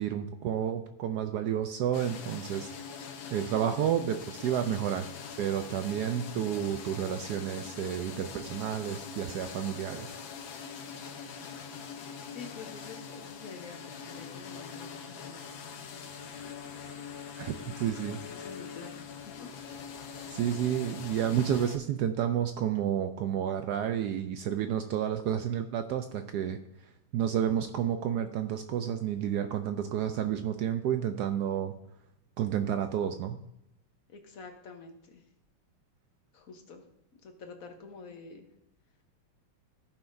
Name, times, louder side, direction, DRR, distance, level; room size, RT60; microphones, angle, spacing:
voice 1, 0.0-2.7 3.3-5.1 5.4-10.1 17.4-18.2 20.3-26.6 27.1-31.7 32.4-33.4, right 9 dB, 85° right, 8 dB, 0.9 m, -30 dB
sound 1, 1.9-21.8, left 6 dB, 70° left, 1.6 m, -43 dB
voice 2, 12.3-16.2 17.5-19.5 20.8-20.9 34.1-35.2 36.3-36.8 37.2-38.5, left 5 dB, 50° left, 4 dB, 1.3 m, -48 dB
16.0 x 5.7 x 2.6 m, 0.83 s
omnidirectional pair, 2.3 m